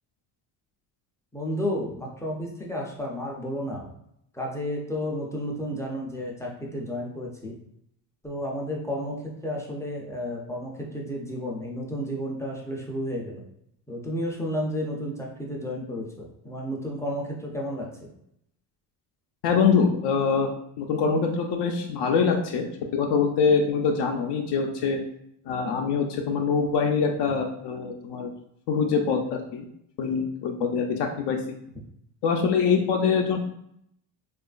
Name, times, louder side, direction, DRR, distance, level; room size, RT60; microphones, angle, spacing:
voice 1, 1.3-3.9 4.3-7.6 8.2-13.4 13.9-18.1, equal, 5° left, -3 dB, 0.3 m, -32 dB
voice 2, 19.4-20.5 20.8-22.7 22.9-25.0 25.5-28.3 28.7-29.7 30.0-31.6 32.2-33.4, left 5 dB, 70° left, 2 dB, 0.5 m, -24 dB
2.9 x 2.4 x 2.3 m, 0.75 s
cardioid pair, 125°, 43 cm